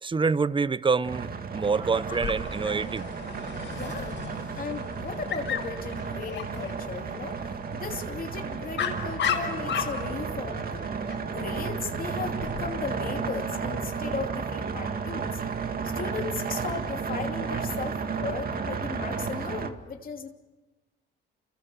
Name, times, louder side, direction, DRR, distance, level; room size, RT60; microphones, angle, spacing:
voice 1, 0.0-3.1, right 4 dB, 25° right, 0.8 m, -26 dB
sound 1, 1.0-19.7, right 5 dB, 50° right, 2.3 m, -33 dB
Dog, 2.1-12.6, left 7 dB, 70° left, 5.8 m, -36 dB
voice 2, 3.7-4.1 4.6-7.4 7.7-10.9 11.3-15.4 15.8-20.3, left 5 dB, 45° left, 2.9 m, -36 dB
29.5 x 28.5 x 7.0 m
cardioid pair, 90°, 20 cm